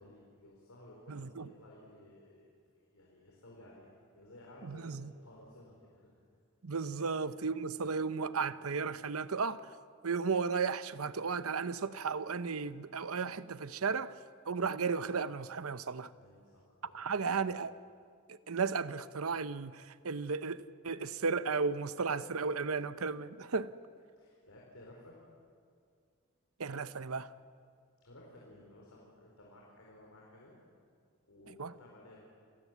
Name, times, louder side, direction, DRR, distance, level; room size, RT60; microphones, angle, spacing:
voice 1, 0.0-2.4 2.9-6.4 6.9-7.2 16.2-17.4 24.2-25.2 28.0-30.5 31.3-32.2, left 1 dB, 85° left, 4.6 m, -56 dB
voice 2, 1.1-1.5 4.6-5.1 6.6-9.7 10.0-14.2 14.5-16.1 16.9-17.7 18.3-23.7 26.6-27.3 31.6-31.7, right 5 dB, 85° right, 0.8 m, -34 dB
29.0 x 18.5 x 8.2 m
head